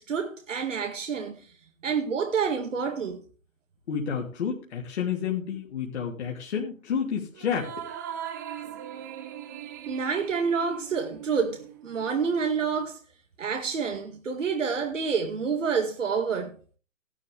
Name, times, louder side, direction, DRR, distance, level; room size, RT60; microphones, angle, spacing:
voice 1, 0.0-1.4 1.8-3.2 9.9-13.0 13.4-16.6, right 6 dB, 70° right, 2.3 m, -28 dB
voice 2, 3.9-7.7, left 7 dB, 55° left, 3.0 m, -30 dB
sound 1, 7.3-12.1, right 10 dB, 15° right, 0.5 m, -40 dB
15.5 x 11.5 x 3.5 m
hypercardioid pair, 145°, 40 cm